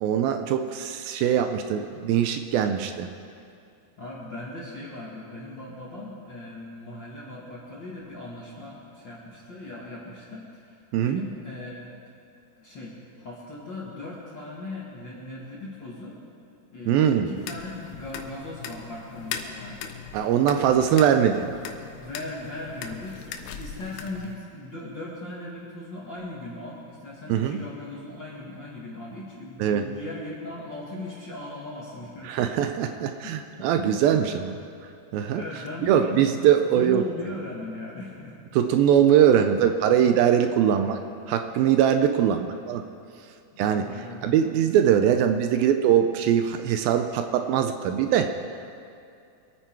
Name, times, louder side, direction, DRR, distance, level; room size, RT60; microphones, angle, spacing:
voice 1, 0.0-3.1 10.9-11.2 16.9-17.3 20.1-21.5 27.3-27.6 29.6-29.9 32.2-34.5 35.1-35.4 35.9-37.0 38.5-41.0 41.3-42.8 43.6-43.9 44.2-48.3, right 9 dB, 80° right, 7 dB, 2.3 m, -22 dB
voice 2, 4.0-11.9 12.6-16.2 16.7-19.9 22.0-32.4 33.2-34.2 34.5-34.6 35.2-36.5 36.7-38.4 42.0-42.2 43.5-44.5, left 2 dB, 45° left, -5 dB, 1.6 m, -39 dB
sound 1, 17.4-24.4, left 7 dB, 90° left, 2.8 m, -39 dB
24.5 x 9.1 x 4.6 m, 2.5 s
omnidirectional pair, 4.4 m